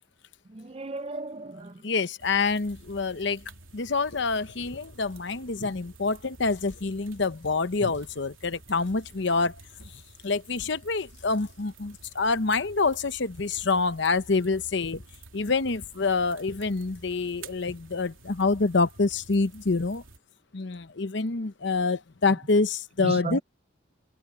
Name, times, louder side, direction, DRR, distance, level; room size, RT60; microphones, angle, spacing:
voice 1, 0.5-1.7 23.0-23.4, right 2 dB, 30° right, 0.5 m, -34 dB
voice 2, 1.8-3.4 3.7-9.6 10.2-15.0 15.3-20.0 20.5-23.4, left 3 dB, 60° left, 0.8 m, -26 dB
sound 1, 2.2-20.2, right 3 dB, 80° right, 2.9 m, -51 dB
head